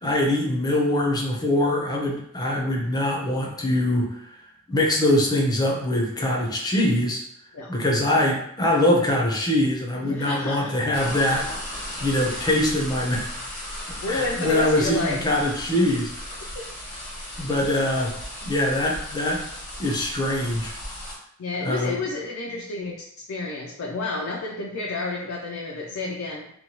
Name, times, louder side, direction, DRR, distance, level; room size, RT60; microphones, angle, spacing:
voice 1, 0.0-4.2 4.7-7.2 7.7-11.5 11.7-13.4 14.1-16.1 17.4-18.1 18.4-19.4 19.8-20.7 21.6-22.0, left 1 dB, 20° left, -1 dB, 0.6 m, -23 dB
voice 2, 10.0-10.7 13.9-15.2 16.5-16.7 21.4-26.5, left 3 dB, 65° left, -1 dB, 0.4 m, -30 dB
sound 1, 10.9-21.1, left 1 dB, 85° left, 1.1 m, -36 dB
2.9 x 2.2 x 2.8 m, 0.70 s
head